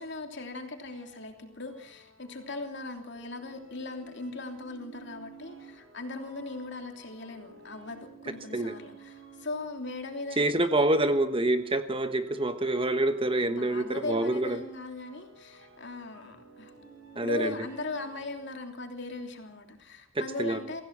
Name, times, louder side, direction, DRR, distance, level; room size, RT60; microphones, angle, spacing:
voice 1, 0.0-10.5 13.4-16.7 17.2-20.8, left 3 dB, 55° left, 5 dB, 3.1 m, -39 dB
sound 1, 0.9-18.6, right 3 dB, 65° right, 5.5 m, -54 dB
voice 2, 10.4-14.6 17.1-17.6 20.1-20.6, right 1 dB, 25° right, 9 dB, 1.2 m, -27 dB
24.5 x 16.0 x 7.4 m, 0.67 s
head